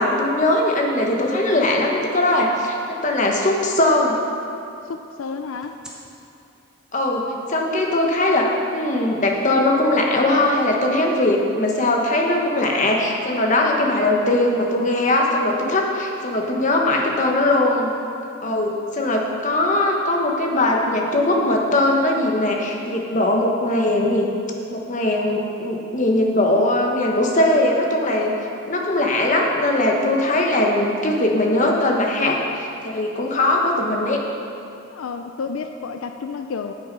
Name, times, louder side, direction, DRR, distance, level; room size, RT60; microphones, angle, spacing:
voice 1, 0.0-4.1 6.9-17.9 18.4-24.3 24.7-28.3 28.7-34.2, left 1 dB, 40° left, 0 dB, 1.1 m, -20 dB
sound 1, 0.7-0.8 1.2-3.0 5.6-5.9, equal, 5° right, 1.0 m, -36 dB
voice 2, 4.8-5.8 34.9-36.7, left 5 dB, 85° left, 7 dB, 0.4 m, -31 dB
8.6 x 8.0 x 5.3 m, 2.6 s
head